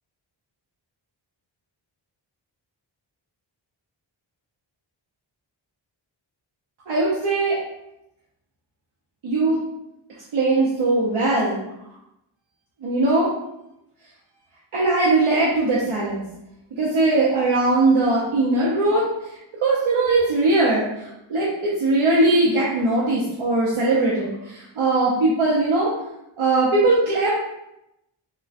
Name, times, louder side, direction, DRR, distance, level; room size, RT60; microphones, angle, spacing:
voice 1, 6.9-7.6 9.2-9.6 10.3-11.6 12.8-13.3 14.7-16.2 16.8-19.0 19.6-25.9 26.4-27.3, right 2 dB, 90° right, -6 dB, 0.7 m, -20 dB
3.7 x 2.1 x 2.4 m, 0.87 s
wide cardioid pair, 105°, 48 cm